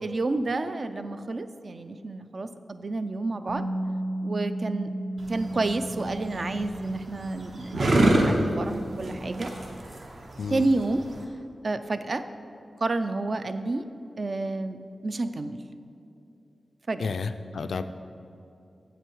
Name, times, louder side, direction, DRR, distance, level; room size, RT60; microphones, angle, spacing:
voice 1, 0.0-3.6 4.2-4.9 5.3-9.5 10.5-11.0 11.6-12.2 12.8-13.9 14.2-14.8 15.0-15.6 16.9-17.1, right 2 dB, 45° right, 10 dB, 0.4 m, -30 dB
Bass guitar, 3.5-9.7, right 1 dB, 85° right, 0.6 m, -35 dB
sound 1, 5.2-11.2, right 1 dB, 60° right, 1.0 m, -27 dB
voice 2, 17.0-17.8, left 5 dB, 80° left, 10 dB, 0.3 m, -31 dB
7.8 x 7.7 x 4.6 m, 2.7 s
wide cardioid pair, 135°, 0 cm